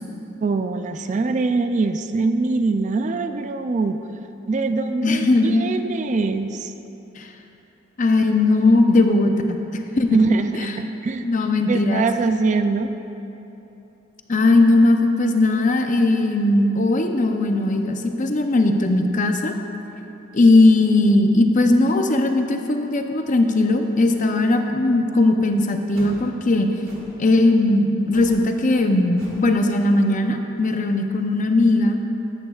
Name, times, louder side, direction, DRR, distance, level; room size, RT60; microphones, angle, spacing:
voice 1, 0.4-4.0 4.5-6.7 10.1-11.3 11.7-12.9, right 3 dB, 35° right, 8 dB, 0.3 m, -23 dB
voice 2, 5.0-5.6 7.2-7.3 8.0-10.2 10.5-10.8 11.2-12.1 14.3-19.5 20.3-26.7 27.2-32.0, left 2 dB, 35° left, 5 dB, 0.6 m, -18 dB
sound 1, 25.9-26.2 26.8-27.2 28.1-28.4 28.7-28.9 29.2-29.5, equal, 85° right, 1.7 m, -39 dB
14.0 x 11.0 x 2.4 m, 3.0 s
head